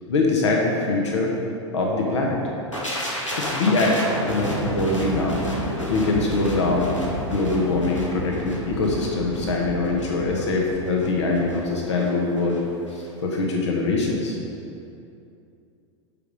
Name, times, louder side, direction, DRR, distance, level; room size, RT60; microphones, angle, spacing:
voice 1, 0.1-1.3 1.7-2.4 3.4-5.4 5.9-7.0 7.2-12.6 12.9-14.4, left 3 dB, 70° left, 0 dB, 1.3 m, -23 dB
sound 1, 2.7-12.6 12.9-13.1, equal, 90° left, 1.8 m, -31 dB
12.0 x 5.4 x 4.9 m, 2.7 s
figure-of-eight pair, 90°, 15 cm